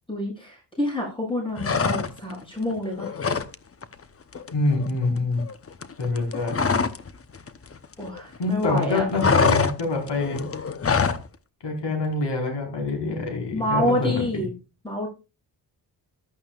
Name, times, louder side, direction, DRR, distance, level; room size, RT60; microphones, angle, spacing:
voice 1, 0.1-3.1 8.0-9.0 13.5-14.5 14.8-15.1, equal, 10° left, -3 dB, 7.7 m, -27 dB
sound 1, 1.6-2.4 2.7-3.5 3.8-4.0 4.3-7.1 7.3-8.4 8.7-11.3, left 5 dB, 35° left, 0.9 m, -24 dB
voice 2, 4.5-5.4 6.0-6.6 8.4-10.4 11.6-14.4, left 3 dB, 85° left, 3 dB, 4.6 m, -26 dB
15.0 x 13.0 x 2.4 m, 0.30 s
wide cardioid pair, 150°, 41 cm